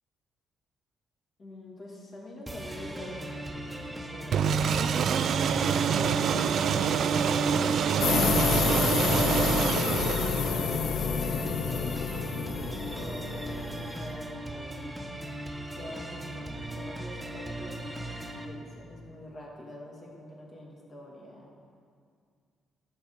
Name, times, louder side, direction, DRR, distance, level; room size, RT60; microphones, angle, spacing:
voice 1, 1.4-4.8 5.8-11.3 12.7-15.1 15.7-18.1 18.3-21.5, left 1 dB, 45° left, -3 dB, 2.4 m, -44 dB
sound 1, 2.5-18.4, right 1 dB, 10° right, 1.0 m, -38 dB
sound 2, 4.3-10.8, right 7 dB, 65° right, 0.3 m, -26 dB
sound 3, 8.0-14.1, left 6 dB, 75° left, 0.5 m, -28 dB
12.5 x 5.4 x 4.3 m, 2.1 s
cardioid pair, 90°, 0 cm